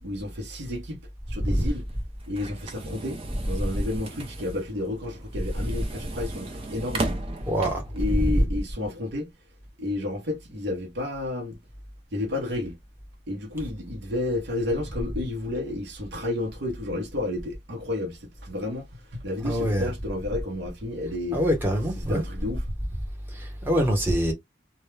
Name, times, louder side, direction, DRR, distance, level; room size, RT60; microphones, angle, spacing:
voice 1, 0.0-1.0 1.3-1.8 2.3-7.1 7.9-9.3 9.8-11.6 12.1-12.8 13.3-21.4 22.0-22.6, left 2 dB, 60° right, 0.8 m, -31 dB
voice 2, 1.4-1.7 7.5-7.8 8.1-8.4 19.4-19.9 21.3-22.2 23.4-24.3, equal, 10° right, 0.9 m, -24 dB
sound 1, 1.5-8.1, right 2 dB, 30° right, 0.4 m, -36 dB
2.2 x 2.1 x 3.1 m
head